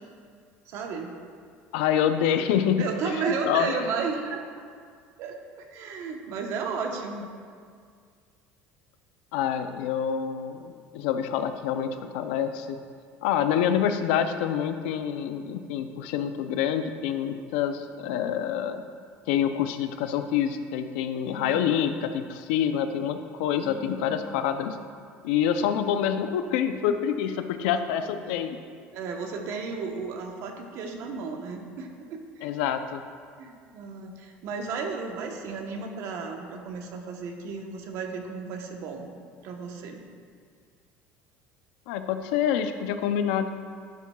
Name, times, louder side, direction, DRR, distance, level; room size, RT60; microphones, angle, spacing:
voice 1, 0.7-1.1 2.8-4.6 5.2-7.3 21.3-21.7 23.6-24.2 28.1-28.2 28.9-32.4 33.4-39.1 39.4-40.0, right 5 dB, 60° right, 3 dB, 1.0 m, -34 dB
voice 2, 1.7-2.9 3.1-3.7 9.3-12.8 13.2-18.8 19.3-24.8 25.2-28.6 32.4-33.0 41.9-43.5, left 9 dB, 85° left, 9 dB, 0.5 m, -27 dB
11.5 x 7.4 x 2.3 m, 2.1 s
cardioid pair, 130°, 6 cm